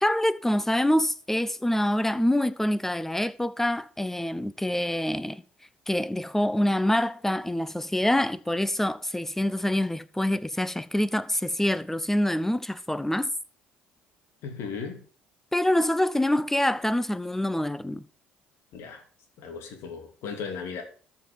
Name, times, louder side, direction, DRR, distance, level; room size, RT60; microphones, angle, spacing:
voice 1, 0.0-5.4 5.9-13.3 15.5-18.0, left 1 dB, 5° left, 0.9 m, -26 dB
voice 2, 14.4-15.0 18.7-19.0 19.4-20.8, left 5 dB, 65° left, 3.0 m, -36 dB
13.5 x 6.0 x 6.6 m
hypercardioid pair, 60°, 5 cm